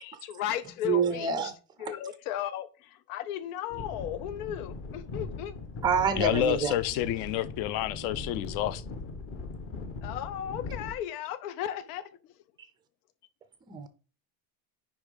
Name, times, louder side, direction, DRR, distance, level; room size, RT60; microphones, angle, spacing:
voice 1, 0.0-1.5 1.8-5.6 10.0-12.1, left 11 dB, 90° left, 0.9 m, -35 dB
voice 2, 0.8-1.5 5.8-6.7 13.7-13.9, right 7 dB, 10° right, 0.4 m, -27 dB
sound 1, 3.7-10.9, left 3 dB, 30° left, 1.1 m, -40 dB
voice 3, 6.2-8.8, left 12 dB, 50° left, 0.5 m, -29 dB
10.0 x 3.6 x 5.2 m
cardioid pair, 175°, 44 cm